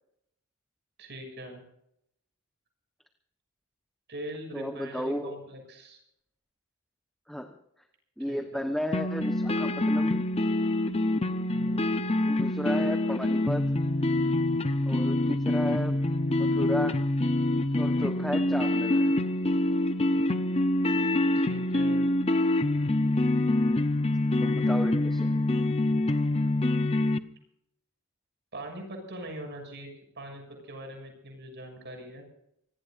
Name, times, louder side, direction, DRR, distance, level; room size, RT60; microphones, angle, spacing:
voice 1, 1.0-1.6 4.1-6.0 8.3-8.6 11.5-12.0 21.3-22.1 24.3-25.0 28.5-29.9 30.1-32.2, right 1 dB, 50° right, 3 dB, 6.8 m, -42 dB
voice 2, 4.5-5.3 7.3-7.5 8.2-10.2 12.3-13.7 14.9-16.0 16.3-17.0 17.8-19.1 24.4-25.4, equal, ahead, 4 dB, 1.1 m, -33 dB
sound 1, 8.9-27.2, left 1 dB, 25° left, 0.8 m, -26 dB
25.5 x 19.0 x 2.6 m, 0.76 s
head